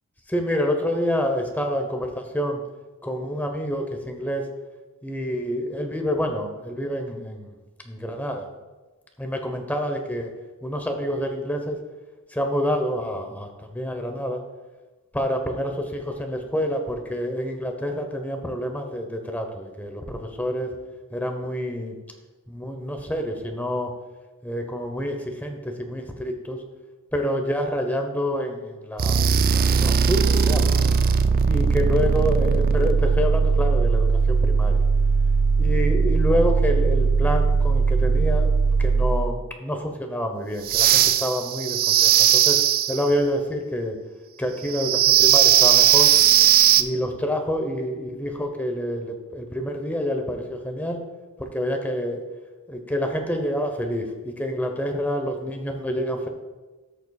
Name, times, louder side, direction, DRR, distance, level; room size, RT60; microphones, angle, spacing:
voice 1, 0.3-2.6 3.0-4.5 5.0-7.5 7.8-8.5 9.2-10.3 10.6-11.8 12.3-14.4 15.1-20.8 21.1-22.0 22.5-24.0 24.4-26.6 27.1-30.7 31.4-34.8 35.6-38.5 38.8-42.6 42.9-44.0 44.4-46.1 46.7-51.0 51.4-52.2 52.7-56.3, equal, 10° left, 4 dB, 0.8 m, -27 dB
sound 1, 29.0-39.4 40.6-43.1 44.7-46.8, right 6 dB, 40° right, 0.3 m, -19 dB
13.5 x 6.9 x 2.3 m, 1.2 s
head